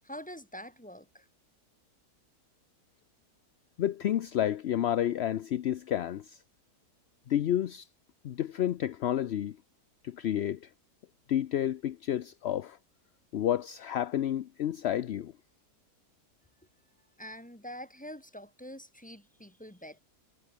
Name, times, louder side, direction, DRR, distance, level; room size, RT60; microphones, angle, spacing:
voice 1, 0.0-1.3 17.2-20.0, equal, 5° left, 4.3 m, -45 dB
voice 2, 3.8-6.4 7.3-7.9 8.2-9.6 10.0-10.7 11.3-12.8 13.3-15.3, left 11 dB, 60° left, 0.7 m, -30 dB
omnidirectional pair, 1.7 m